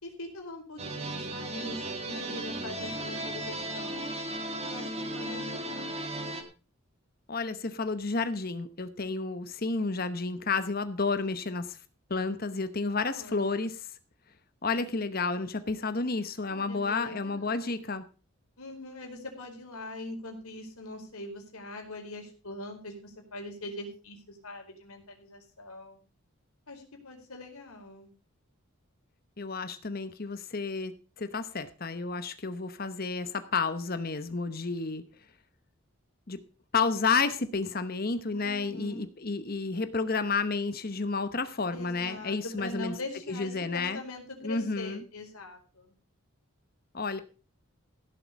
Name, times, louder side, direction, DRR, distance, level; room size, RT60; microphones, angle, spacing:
voice 1, 0.0-4.1 4.6-6.0 13.0-13.7 16.5-17.7 18.6-26.0 26.7-28.1 38.3-39.1 41.7-45.9, left 1 dB, 85° left, 3 dB, 4.7 m, -42 dB
sound 1, 0.8-6.4, right 1 dB, 30° right, 1.9 m, -36 dB
voice 2, 7.3-11.8 12.1-13.7 14.6-18.0 29.4-35.0 36.3-36.4 36.7-42.9 43.3-44.0 44.4-45.0 46.9-47.2, left 4 dB, 45° left, 11 dB, 1.0 m, -31 dB
16.5 x 7.7 x 5.2 m, 0.34 s
head